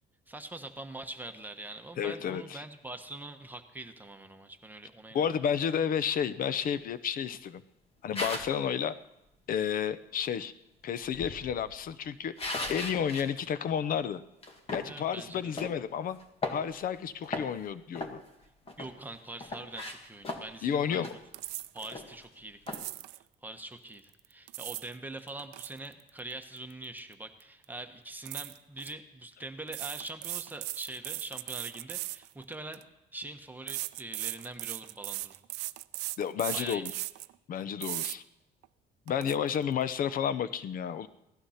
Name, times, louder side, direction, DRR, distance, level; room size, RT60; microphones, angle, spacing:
voice 1, 0.3-5.2 14.8-15.6 18.8-21.1 21.7-22.8 23.4-32.8 33.1-35.3 36.5-37.0, right 2 dB, 10° right, 5 dB, 1.2 m, -43 dB
voice 2, 2.0-2.6 5.1-7.6 8.0-8.9 9.5-10.5 10.8-12.3 12.7-14.2 14.7-16.2 16.5-18.2 20.6-21.1 36.2-36.9 37.5-38.2 39.1-41.1, left 8 dB, 55° left, 14 dB, 0.8 m, -31 dB
sound 1, 8.1-8.6 11.0-13.3 13.7-13.8 14.4-14.9 15.6-15.8 16.2-17.0 17.2-17.6 17.9-19.0 19.4-20.7 21.0-21.2 21.5-21.6 21.8-22.2 22.7-22.9, left 2 dB, 35° left, 2.0 m, -37 dB
sound 2, 21.3-21.9 22.7-23.2 24.2-24.9 25.3-27.1 27.4-27.6 28.3-28.9 29.7-32.8 33.7-37.3 37.8-38.2 38.6-38.7 39.1-39.4, right 19 dB, 90° right, 0.4 m, -38 dB
16.5 x 11.5 x 5.8 m, 0.91 s
cardioid pair, 110°, 17 cm